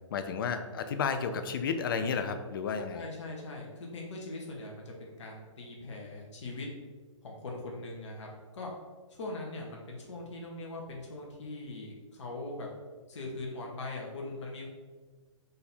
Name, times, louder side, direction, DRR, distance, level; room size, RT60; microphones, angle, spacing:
voice 1, 0.1-3.1, left 6 dB, 45° left, 9 dB, 0.4 m, -32 dB
voice 2, 2.9-6.7 7.2-8.7 9.1-12.7 13.1-14.7, left 2 dB, 60° left, -1 dB, 1.1 m, -41 dB
3.9 x 2.7 x 4.3 m, 1.3 s
figure-of-eight pair, 135°, 17 cm